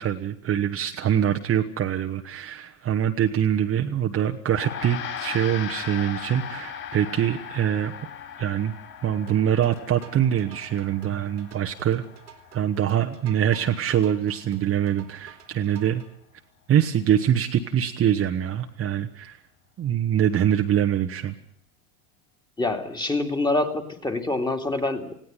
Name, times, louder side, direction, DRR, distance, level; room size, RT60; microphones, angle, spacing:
voice 1, 0.0-7.9 8.4-8.7 9.0-12.0 12.5-16.0 16.7-19.4 19.8-21.3, right 10 dB, 30° right, 5 dB, 1.3 m, -24 dB
Gong, 4.5-14.1, left 8 dB, 45° left, 6.7 m, -39 dB
sound 1, 9.3-16.1, right 9 dB, 85° right, 3.0 m, -43 dB
voice 2, 22.6-25.1, left 2 dB, 10° left, 4 dB, 2.6 m, -26 dB
19.5 x 17.0 x 9.4 m, 0.67 s
hypercardioid pair, 90°, 46 cm